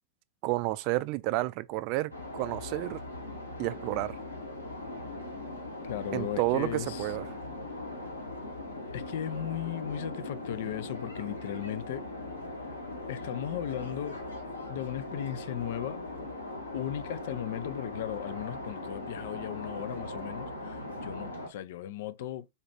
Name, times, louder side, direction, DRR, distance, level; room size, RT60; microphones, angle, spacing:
voice 1, 0.4-3.0 3.6-4.1 6.1-7.2, right 19 dB, 45° right, 0.3 m, -30 dB
sound 1, 2.1-21.5, left 2 dB, 85° left, 1.1 m, -40 dB
voice 2, 5.8-7.1 8.9-12.1 13.1-14.2 14.7-16.0 16.7-22.5, left 11 dB, 55° left, 0.3 m, -36 dB
4.1 x 2.4 x 3.3 m
figure-of-eight pair, 90°, 0 cm